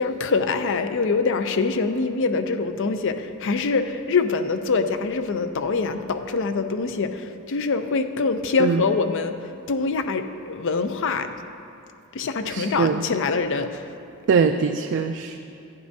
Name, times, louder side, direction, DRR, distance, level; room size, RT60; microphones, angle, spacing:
voice 1, 0.0-11.3 12.1-13.8, left 4 dB, 60° left, 9 dB, 0.5 m, -24 dB
voice 2, 12.4-13.0 14.3-15.4, right 5 dB, 55° right, 5 dB, 0.3 m, -22 dB
11.5 x 10.5 x 2.7 m, 2.7 s
head